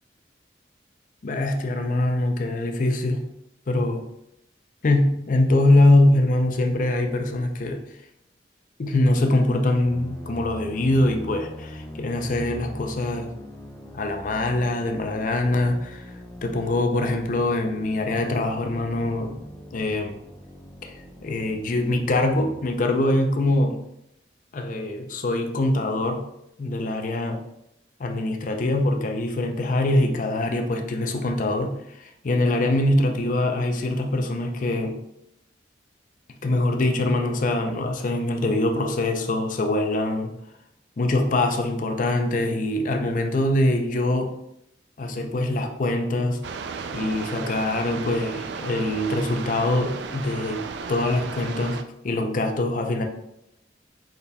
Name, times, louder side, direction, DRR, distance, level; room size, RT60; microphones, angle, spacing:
voice 1, 1.2-3.3 3.7-4.1 4.8-7.8 8.8-13.4 13.9-16.1 16.4-19.4 19.7-20.2 20.8-20.9 21.2-23.8 24.5-26.3 26.6-27.5 28.0-35.0 36.4-40.4 41.0-44.4 45.0-46.5 46.9-53.0, left 1 dB, 45° left, 4 dB, 0.5 m, -23 dB
sound 1, 9.8-22.7, equal, 10° left, 0.7 m, -41 dB
sound 2, 46.4-51.8, right 5 dB, 70° right, 0.3 m, -34 dB
5.1 x 4.6 x 2.2 m, 0.80 s
head